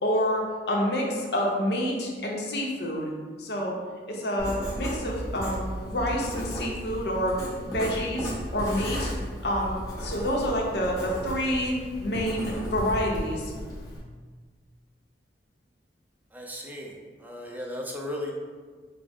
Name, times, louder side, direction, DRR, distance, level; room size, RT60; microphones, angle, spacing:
voice 1, 0.0-3.1 3.4-3.8 4.1-7.4 7.7-9.1 9.4-11.7 12.0-13.5, equal, 65° left, -2 dB, 0.7 m, -28 dB
Writing, 4.4-14.0, equal, 20° left, 0.9 m, -35 dB
voice 2, 16.3-16.9 17.2-18.3, left 1 dB, 10° right, -1 dB, 0.4 m, -35 dB
4.9 x 2.0 x 3.5 m, 1.5 s
head